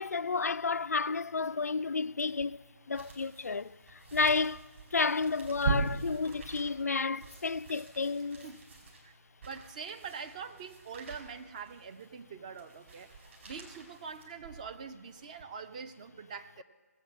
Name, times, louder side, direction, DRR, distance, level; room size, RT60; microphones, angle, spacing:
voice 1, 0.0-2.6 2.9-8.5, left 4 dB, 70° left, 0.4 m, -31 dB
sound 1, 2.2-14.8 15.3-15.4, right 4 dB, 50° right, 4.3 m, -41 dB
voice 2, 9.5-13.1 13.5-16.6, right 6 dB, 30° right, 0.7 m, -44 dB
18.0 x 8.4 x 7.4 m
figure-of-eight pair, 150°, 9 cm